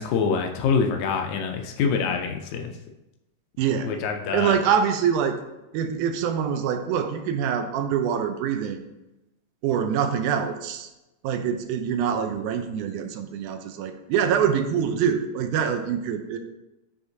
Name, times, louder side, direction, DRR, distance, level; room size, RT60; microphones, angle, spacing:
voice 1, 0.0-2.7 3.8-4.5, left 5 dB, 80° left, 3 dB, 1.9 m, -25 dB
voice 2, 3.6-3.9 4.3-5.4 5.7-8.8 9.6-10.9 11.2-16.4, right 8 dB, 85° right, 7 dB, 2.0 m, -25 dB
9.7 x 3.6 x 2.7 m, 0.95 s
omnidirectional pair, 3.5 m